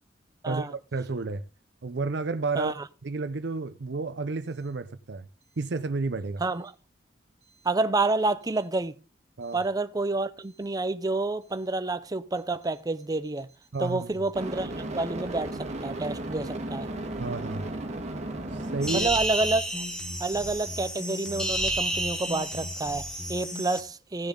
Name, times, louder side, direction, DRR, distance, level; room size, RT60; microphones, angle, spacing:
voice 1, 0.4-1.4 1.8-2.7 3.0-5.2 5.6-6.4 9.4-9.6 13.7-14.1 17.2-17.7 18.5-19.1, right 3 dB, 65° right, 0.6 m, -31 dB
voice 2, 6.4-6.7 7.6-9.0 9.5-13.5 13.8-16.9 18.9-19.8 20.2-24.3, right 2 dB, 20° right, 0.5 m, -29 dB
sound 1, 9.5-9.6 14.4-19.0, right 1 dB, 40° right, 1.9 m, -35 dB
sound 2, 18.8-23.8, right 1 dB, 5° left, 2.0 m, -31 dB
15.5 x 7.0 x 3.8 m
head